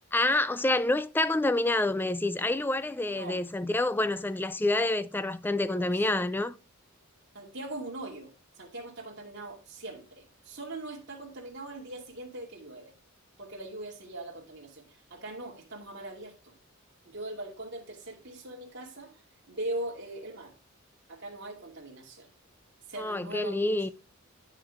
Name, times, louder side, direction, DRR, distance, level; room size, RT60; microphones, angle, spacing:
voice 1, 0.1-6.5 23.0-23.9, left 2 dB, 10° left, 0.3 m, -27 dB
voice 2, 3.1-3.4 5.7-5.9 7.3-8.3 8.6-12.9 13.4-16.5 17.0-19.2 19.5-20.5 21.1-22.3 22.9-23.7, right 2 dB, 55° right, 2.4 m, -41 dB
9.7 x 6.5 x 3.6 m
head